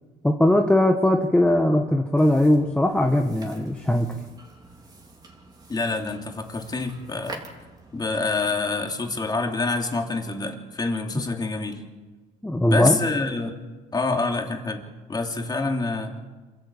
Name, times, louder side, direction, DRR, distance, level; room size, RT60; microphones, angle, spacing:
voice 1, 0.2-4.1 12.4-13.0, left 1 dB, 5° left, 3 dB, 1.3 m, -20 dB
sound 1, 2.2-8.5, right 2 dB, 25° right, 3.8 m, -46 dB
voice 2, 5.7-7.4 7.9-11.8 12.7-13.6 13.9-16.2, left 3 dB, 25° left, 3 dB, 3.1 m, -27 dB
27.0 x 14.0 x 8.5 m, 1.3 s
cardioid pair, 110°, 17 cm